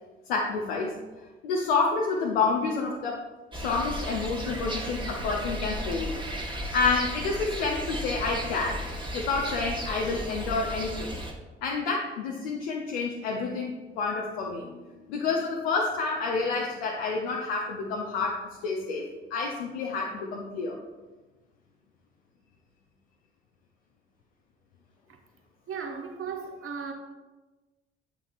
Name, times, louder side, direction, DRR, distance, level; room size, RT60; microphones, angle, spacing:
voice 1, 0.3-0.9 1.4-3.2 3.5-6.1 6.4-8.8 9.1-11.2 11.6-20.8, left 4 dB, 80° left, 0.6 m, -29 dB
sound 1, 3.5-11.3, equal, 15° right, 1.2 m, -35 dB
voice 2, 25.7-26.9, right 6 dB, 45° right, 1.1 m, -36 dB
7.8 x 6.1 x 2.5 m
figure-of-eight pair, 40°, 29 cm